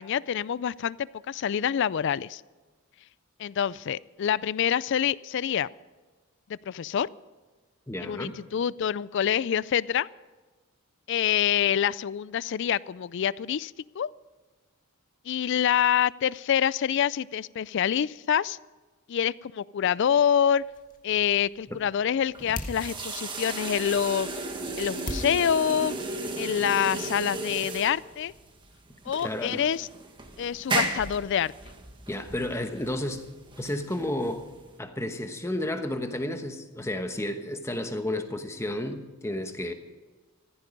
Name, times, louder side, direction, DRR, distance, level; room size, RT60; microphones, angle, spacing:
voice 1, 0.0-2.4 3.4-5.7 6.5-7.1 8.0-10.1 11.1-14.1 15.3-18.6 19.1-20.7 21.0-24.3 24.8-25.9 26.4-28.3 29.1-29.9 30.4-31.5, left 9 dB, 55° left, 21 dB, 0.3 m, -26 dB
voice 2, 7.9-8.4 21.7-21.8 29.2-29.6 32.1-33.3 33.6-34.5 34.8-39.7, left 1 dB, 15° left, 7 dB, 1.0 m, -32 dB
sound 1, 20.3-26.7, left 2 dB, 40° left, 1.6 m, -43 dB
sound 2, 22.3-34.8, right 2 dB, 20° right, 1.5 m, -35 dB
15.0 x 15.0 x 5.3 m, 1.3 s
head